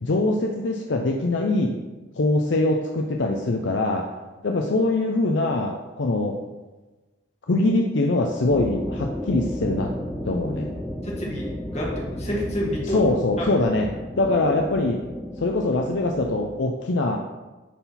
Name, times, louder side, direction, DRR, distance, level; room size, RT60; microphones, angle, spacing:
voice 1, 0.0-1.7 2.2-4.1 4.4-6.4 7.5-9.9 10.2-10.7 12.9-13.9 14.2-15.0 15.4-17.2, left 2 dB, 60° left, 2 dB, 0.6 m, -23 dB
sound 1, 8.5-16.4, left 1 dB, ahead, 0.4 m, -33 dB
voice 2, 11.0-13.0 13.4-13.5, equal, 35° left, -4 dB, 1.8 m, -29 dB
10.0 x 4.0 x 4.2 m, 1.2 s
head